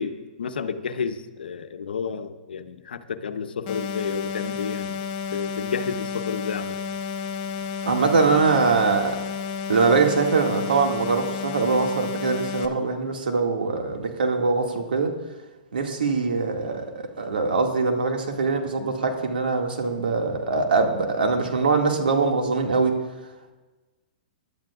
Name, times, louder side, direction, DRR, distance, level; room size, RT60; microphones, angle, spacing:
voice 1, 0.0-5.0 5.3-6.8, left 6 dB, 80° left, 0.9 m, -31 dB
sound 1, 3.7-12.7, left 6 dB, 40° left, 1.2 m, -31 dB
voice 2, 7.8-9.2 9.7-15.1 15.7-23.0, right 4 dB, 85° right, 2.2 m, -23 dB
23.0 x 12.0 x 2.5 m
hypercardioid pair, 140°, 5 cm